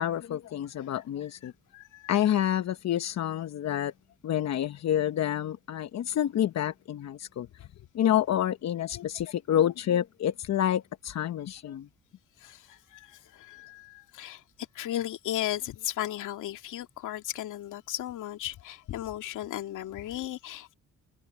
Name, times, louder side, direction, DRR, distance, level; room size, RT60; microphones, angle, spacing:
voice 1, 0.0-1.5 2.1-3.9 4.2-7.7 7.9-11.9, left 11 dB, 60° left, 1.0 m, -28 dB
voice 2, 1.4-2.1 12.4-14.4 14.7-20.7, left 13 dB, 85° left, 2.4 m, -36 dB
cardioid pair, 90°, 30 cm